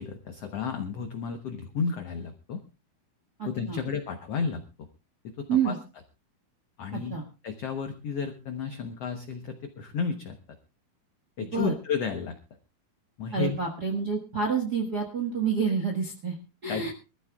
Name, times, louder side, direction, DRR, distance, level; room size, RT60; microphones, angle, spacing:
voice 1, 0.0-2.6 3.4-4.9 5.2-5.8 6.8-7.2 7.4-10.4 11.4-12.3 13.2-13.6 16.7-16.8, left 6 dB, 85° left, 6 dB, 1.3 m, -32 dB
voice 2, 3.4-3.8 5.5-5.8 7.1-7.2 11.5-11.7 13.3-16.3 16.6-16.9, right 6 dB, 55° right, 2 dB, 1.1 m, -28 dB
24.5 x 14.0 x 2.3 m, 0.30 s
omnidirectional pair, 4.4 m